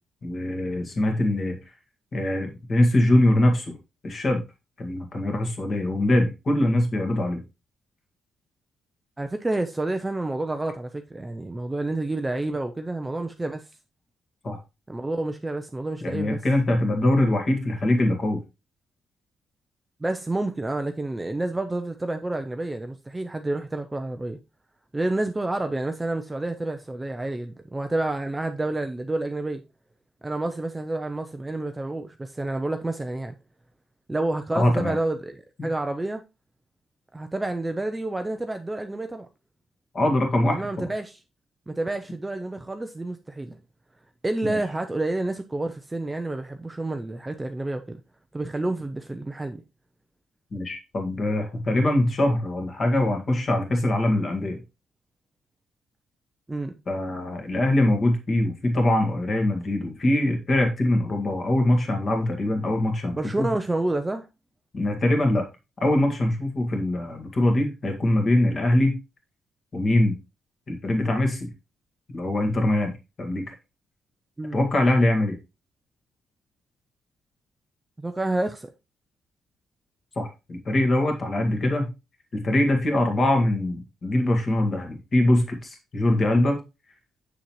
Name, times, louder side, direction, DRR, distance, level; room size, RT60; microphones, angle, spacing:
voice 1, 0.2-1.6 2.1-3.7 4.0-4.4 4.8-7.4 14.4-14.6 16.0-18.4 34.5-34.9 39.9-40.9 44.4-44.6 50.5-54.6 56.9-63.5 64.7-65.5 65.8-69.0 69.7-70.2 70.7-71.5 72.1-72.9 73.2-73.5 74.5-75.4 80.2-81.9 82.3-86.6, left 1 dB, 35° left, 1.8 m, -23 dB
voice 2, 9.2-13.6 14.9-16.4 20.0-24.4 24.9-29.6 30.2-33.4 34.1-36.2 37.1-39.3 40.5-41.2 41.7-43.6 44.2-48.0 48.3-49.6 56.5-56.7 63.1-64.3 74.4-74.6 78.0-78.7, right 2 dB, 10° right, 0.5 m, -29 dB
7.1 x 6.5 x 3.0 m
cardioid pair, 150°, 0 cm